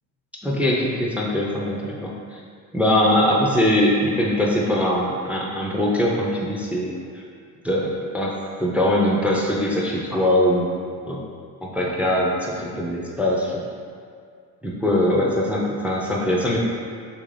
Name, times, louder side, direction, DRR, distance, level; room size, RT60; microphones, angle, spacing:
voice 1, 0.4-2.4 2.7-6.9 7.6-10.7 11.1-11.2 11.6-13.6 14.6-16.6, left 1 dB, 5° right, -3 dB, 0.3 m, -22 dB
3.2 x 2.5 x 3.2 m, 2.2 s
supercardioid pair, 85°, 44 cm